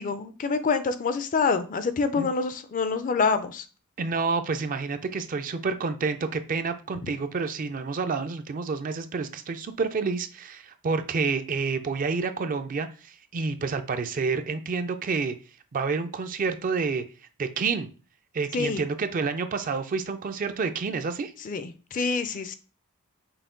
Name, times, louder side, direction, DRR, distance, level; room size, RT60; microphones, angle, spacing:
voice 1, 0.0-3.6 18.5-18.8 21.4-22.5, left 4 dB, 35° left, 11 dB, 0.4 m, -26 dB
voice 2, 4.0-15.3 15.7-17.0 17.4-17.9 18.3-21.3, right 4 dB, 40° right, 8 dB, 0.4 m, -29 dB
5.7 x 2.2 x 3.7 m, 0.35 s
head